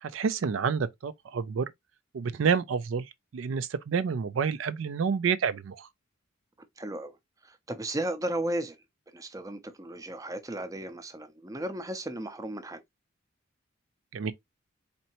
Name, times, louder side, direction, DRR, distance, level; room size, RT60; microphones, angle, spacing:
voice 1, 0.0-1.7 2.1-5.9 14.1-14.3, right 6 dB, 70° right, 0.4 m, -29 dB
voice 2, 6.8-7.2 7.4-8.8 9.1-12.8, right 1 dB, 15° right, 0.5 m, -35 dB
4.2 x 2.7 x 2.9 m
head